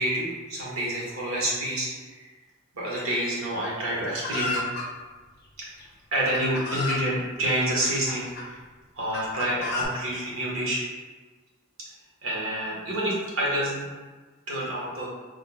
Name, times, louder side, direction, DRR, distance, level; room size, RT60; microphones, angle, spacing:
voice 1, 0.0-2.3 2.7-4.6 5.6-5.7 6.1-8.6 8.9-10.8 12.2-13.9 14.5-15.1, right 1 dB, 85° right, -5 dB, 1.2 m, -28 dB
Chicken rooster, 4.2-4.9 5.8-5.9 6.3-7.0 7.8-8.5 9.1-9.8, left 3 dB, 50° left, 0.6 m, -31 dB
3.9 x 3.1 x 2.2 m, 1.3 s
head